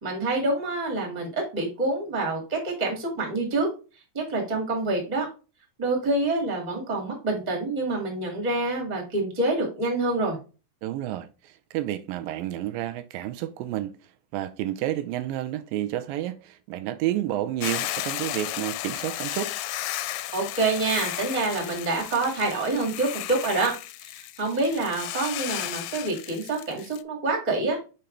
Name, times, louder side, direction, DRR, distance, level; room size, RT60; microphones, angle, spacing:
voice 1, 0.0-3.7 4.1-5.3 5.8-10.4 20.3-23.7 24.0-27.8, right 2 dB, 15° right, 1.6 m, -27 dB
voice 2, 10.8-13.9 14.3-19.5, right 13 dB, 85° right, 2.3 m, -30 dB
Hiss / Boiling, 17.6-27.0, left 15 dB, 85° left, 2.2 m, -34 dB
5.7 x 5.2 x 3.2 m
omnidirectional pair, 4.0 m